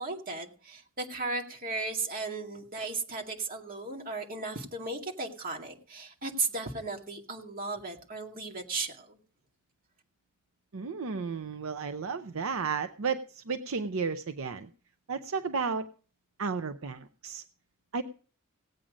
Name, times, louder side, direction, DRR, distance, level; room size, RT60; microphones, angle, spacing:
voice 1, 0.0-9.2, right 3 dB, 40° right, 2 dB, 2.2 m, -35 dB
voice 2, 10.7-14.7 15.1-15.9 16.4-17.4 17.9-18.0, right 5 dB, 65° right, 10 dB, 0.6 m, -33 dB
17.0 x 8.7 x 5.1 m, 0.41 s
head